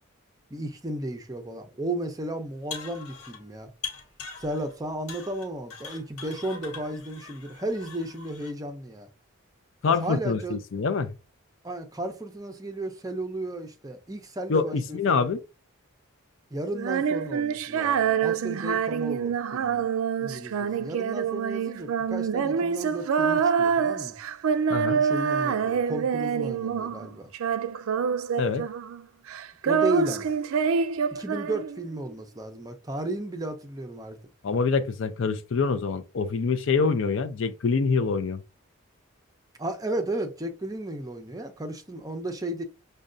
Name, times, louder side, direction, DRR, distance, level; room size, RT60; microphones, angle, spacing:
voice 1, 0.5-3.7 4.4-9.1 10.0-10.6 11.6-15.3 16.5-19.9 20.2-24.2 24.9-27.3 29.7-30.3 31.1-34.2 39.6-42.6, right 1 dB, 15° right, 0.5 m, -34 dB
sound 1, 2.5-3.5 3.8-4.7 5.1-8.5, left 5 dB, 85° left, 1.0 m, -41 dB
voice 2, 9.8-11.1 14.5-15.4 24.7-25.0 28.4-28.6 34.4-38.4, left 4 dB, 60° left, 0.4 m, -25 dB
Female singing, 16.7-27.1 27.3-29.0 29.3-31.9, right 6 dB, 75° right, 0.4 m, -26 dB
6.3 x 2.2 x 2.5 m
head